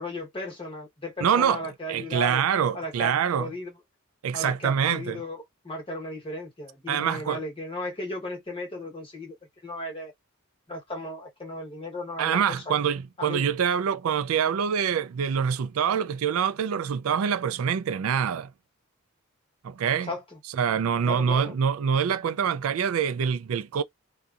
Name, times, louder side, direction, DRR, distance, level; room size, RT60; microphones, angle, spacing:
voice 1, 0.0-2.4 2.7-3.7 4.3-9.4 9.6-10.1 10.7-12.7 13.2-13.5 20.0-20.4 21.0-21.6, left 1 dB, 25° left, 1.2 m, -35 dB
voice 2, 1.2-1.6 1.9-3.5 4.2-5.2 6.9-7.4 12.2-18.5 19.6-20.1 20.6-23.8, right 7 dB, 80° right, 0.4 m, -25 dB
2.7 x 2.2 x 2.4 m
head